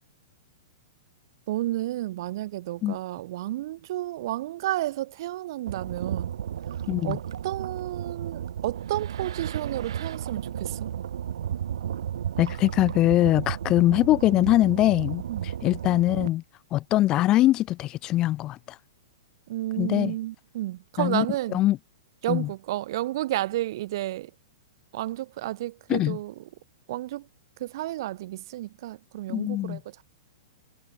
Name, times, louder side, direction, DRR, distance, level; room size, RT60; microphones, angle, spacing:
voice 1, 1.5-6.3 7.0-10.9 15.3-15.5 19.5-21.6 22.2-24.3 24.9-26.3 26.9-27.2 27.6-29.8, right 15 dB, 55° right, 0.9 m, -31 dB
sound 1, 5.7-16.3, right 9 dB, 75° right, 1.6 m, -33 dB
voice 2, 6.9-7.2 12.4-16.4 16.7-18.8 19.8-20.1 21.0-21.3 21.5-21.8 22.3-22.5 25.9-26.2 29.3-29.8, left 15 dB, 25° left, 0.3 m, -22 dB
hypercardioid pair, 145°, 3 cm